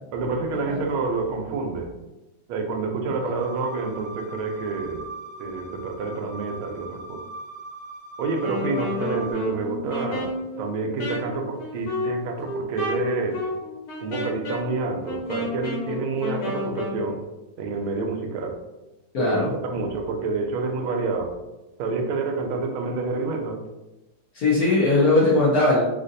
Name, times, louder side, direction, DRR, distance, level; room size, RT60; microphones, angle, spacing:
voice 1, 0.1-1.9 2.5-5.1 5.4-7.2 8.2-13.4 14.0-17.2 17.6-18.6 19.2-21.3 21.8-23.6, right 3 dB, 85° right, 3 dB, 1.4 m, -28 dB
sound 1, 3.3-9.3, right 2 dB, 20° left, 1.1 m, -40 dB
Wind instrument woodwind instrument, 8.3-17.0, left 2 dB, 85° left, 2.0 m, -31 dB
voice 2, 19.1-19.5 24.3-25.8, left 2 dB, 65° left, -6 dB, 0.9 m, -19 dB
3.9 x 2.5 x 2.6 m, 1.0 s
omnidirectional pair, 2.3 m